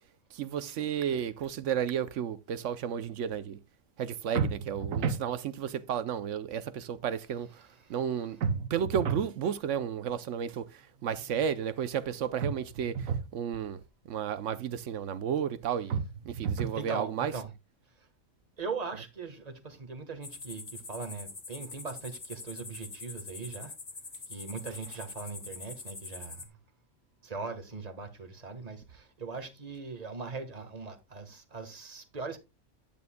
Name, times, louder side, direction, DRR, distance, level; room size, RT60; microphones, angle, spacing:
voice 1, 0.3-3.6 4.0-7.5 7.9-8.4 8.7-10.7 11.0-13.0 13.3-13.8 14.1-16.0 16.3-17.3, right 8 dB, 70° right, 1.0 m, -32 dB
sound 1, 4.3-5.3 8.4-9.3 12.4-13.3 15.9-16.8, right 6 dB, 90° right, 1.3 m, -31 dB
voice 2, 7.6-8.5 10.9-11.3 16.7-17.5 17.9-18.1 18.6-23.7 24.3-26.6 27.2-32.4, right 4 dB, 30° right, 1.6 m, -40 dB
sound 2, 20.2-26.5, left 4 dB, 40° left, 1.5 m, -44 dB
10.5 x 9.4 x 2.2 m
omnidirectional pair, 1.4 m